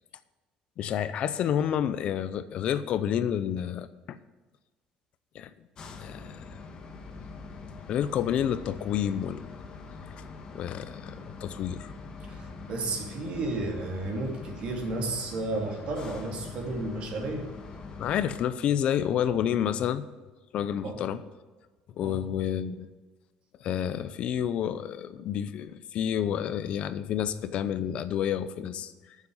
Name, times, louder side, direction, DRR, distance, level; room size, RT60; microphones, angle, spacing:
voice 1, 0.8-4.2 5.3-5.5 6.0-6.6 7.9-9.5 10.5-11.9 18.0-20.0 20.5-21.2 22.0-22.9 23.6-29.2, left 9 dB, 50° left, 13 dB, 0.6 m, -29 dB
sound 1, 5.8-18.3, left 4 dB, 35° left, 1.3 m, -43 dB
voice 2, 12.3-17.5 20.8-21.0 22.0-22.2, right 2 dB, 45° right, 2 dB, 2.6 m, -33 dB
9.5 x 7.3 x 7.8 m, 1.3 s
cardioid pair, 165°, 2 cm